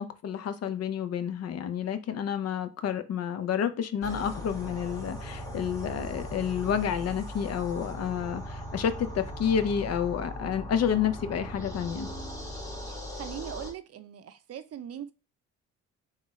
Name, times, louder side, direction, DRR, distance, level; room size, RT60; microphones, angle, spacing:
voice 1, 0.0-12.1, left 8 dB, 55° left, 0.6 m, -30 dB
sound 1, 4.0-13.7, equal, 10° left, 1.2 m, -39 dB
voice 2, 12.9-15.1, right 10 dB, 55° right, 0.5 m, -40 dB
3.7 x 2.4 x 4.1 m
cardioid pair, 90°, 30 cm